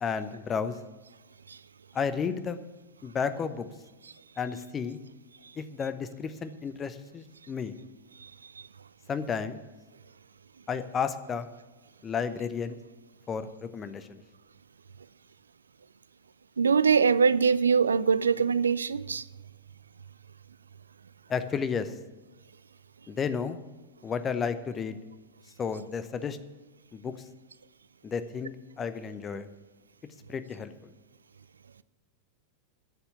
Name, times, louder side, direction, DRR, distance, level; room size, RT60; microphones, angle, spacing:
voice 1, 0.0-0.7 1.9-2.6 3.0-3.7 4.4-5.0 5.6-7.7 9.1-9.6 10.7-11.5 12.0-12.8 13.3-14.2 21.3-21.9 23.1-23.6 24.0-25.0 25.6-26.4 26.9-27.2 28.0-29.5 30.3-30.9, left 6 dB, 25° left, 0.9 m, -32 dB
voice 2, 16.6-19.2, right 6 dB, 75° right, 0.4 m, -23 dB
10.5 x 7.2 x 9.4 m
figure-of-eight pair, 90°, 0 cm